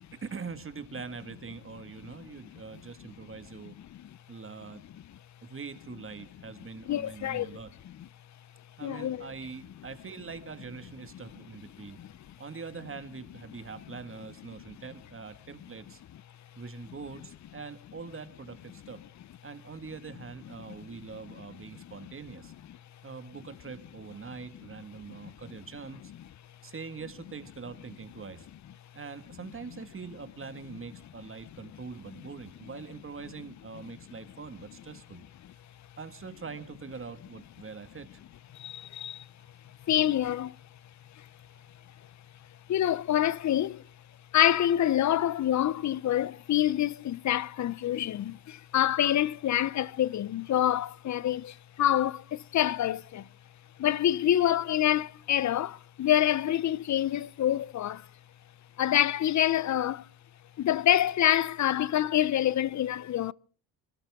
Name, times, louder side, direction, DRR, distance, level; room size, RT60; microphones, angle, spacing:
voice 1, 0.1-3.7 4.3-4.8 5.4-7.7 8.8-12.0 12.4-16.0 16.6-19.0 19.4-22.5 23.0-26.0 26.6-28.5 28.9-35.2 36.0-38.1, right 5 dB, 35° right, 1.9 m, -43 dB
voice 2, 2.2-2.6 3.9-4.1 6.8-7.6 7.9-8.0 8.8-9.3 11.8-12.1 20.7-20.8 21.8-21.9 25.1-25.3 38.6-39.2 39.9-40.5 42.7-43.8 44.3-53.3 53.8-58.0 58.8-60.0 60.6-63.3, left 12 dB, 50° left, 0.7 m, -27 dB
27.0 x 13.0 x 3.6 m
supercardioid pair, 70°, 37 cm